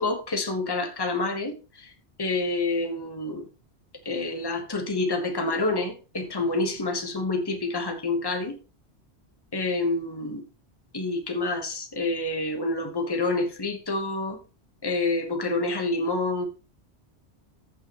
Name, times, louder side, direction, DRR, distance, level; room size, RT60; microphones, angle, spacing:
voice 1, 0.0-1.9 2.2-3.5 4.0-8.5 9.5-10.4 10.9-14.4 14.8-16.4, left 2 dB, 20° left, 5 dB, 1.3 m, -28 dB
14.0 x 6.0 x 3.0 m, 0.32 s
omnidirectional pair, 1.1 m